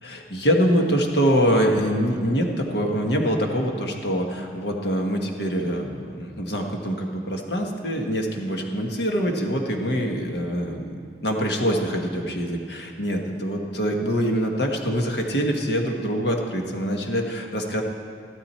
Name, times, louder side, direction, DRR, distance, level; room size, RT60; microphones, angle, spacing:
voice 1, 0.0-11.0 11.2-17.8, equal, 60° left, 2 dB, 1.4 m, -24 dB
14.5 x 13.0 x 4.4 m, 2.3 s
head